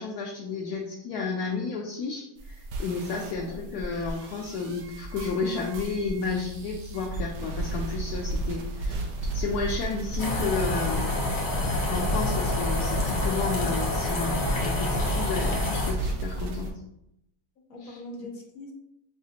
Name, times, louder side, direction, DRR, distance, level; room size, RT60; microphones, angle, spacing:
voice 1, 0.0-11.3 11.9-16.7 17.8-18.0, left 4 dB, 80° left, -1 dB, 1.1 m, -32 dB
sound 1, 2.4-16.7, right 2 dB, 75° right, 1.2 m, -34 dB
voice 2, 3.3-3.7 13.5-13.7 17.6-18.7, left 1 dB, 65° left, 0 dB, 1.4 m, -42 dB
sound 2, 10.2-15.9, left 2 dB, 40° left, 0.8 m, -28 dB
5.7 x 2.4 x 2.8 m, 0.80 s
omnidirectional pair, 1.7 m